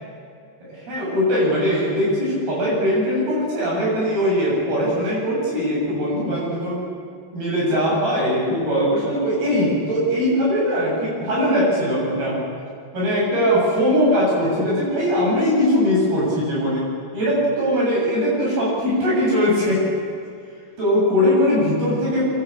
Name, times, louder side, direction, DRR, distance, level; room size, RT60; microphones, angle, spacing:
voice 1, 0.6-6.8 7.3-12.4 12.9-16.9 17.1-19.9 20.8-22.3, equal, 55° right, -5 dB, 9.8 m, -20 dB
25.0 x 24.0 x 8.7 m, 2.3 s
omnidirectional pair, 5.2 m